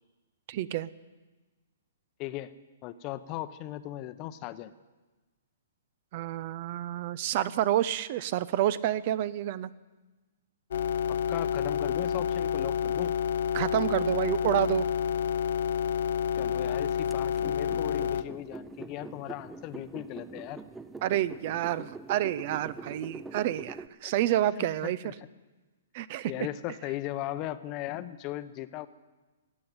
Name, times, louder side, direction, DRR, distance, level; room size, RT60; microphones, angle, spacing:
voice 1, 0.5-0.9 6.1-9.7 13.5-14.9 21.0-25.0 25.9-26.3, right 13 dB, 45° right, 18 dB, 0.6 m, -29 dB
voice 2, 2.2-2.5 2.8-4.7 11.1-13.1 16.4-20.6 24.0-24.1 24.5-25.1 26.3-28.9, left 14 dB, 35° left, 13 dB, 0.8 m, -37 dB
sound 1, 10.7-18.2, left 8 dB, 65° left, 0.6 m, -29 dB
sound 2, 17.1-23.9, right 3 dB, 5° right, 0.6 m, -44 dB
16.0 x 8.6 x 9.6 m, 1.2 s
hypercardioid pair, 135°, 0 cm